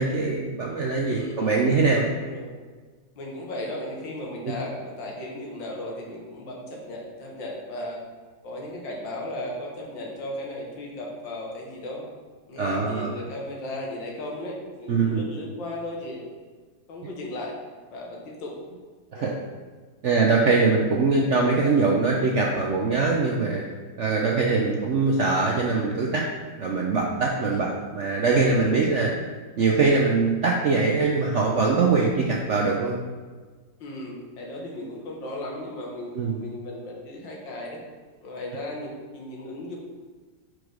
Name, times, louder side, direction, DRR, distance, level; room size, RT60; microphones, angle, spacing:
voice 1, 0.0-2.0 4.5-4.6 12.6-13.2 14.9-15.2 19.1-19.3 20.0-23.6 24.0-26.2 26.6-29.1 29.6-33.0 36.1-36.4, right 4 dB, 65° right, -1 dB, 0.7 m, -22 dB
voice 2, 1.0-1.8 2.1-2.5 3.2-8.0 8.4-12.1 12.5-16.2 16.9-17.6 17.9-18.5 19.1-19.3 20.3-20.8 24.5-24.8 27.4-27.7 28.9-29.0 33.8-37.8 38.2-39.8, left 1 dB, 85° left, -1 dB, 2.1 m, -36 dB
5.0 x 4.8 x 6.2 m, 1.5 s
omnidirectional pair, 2.0 m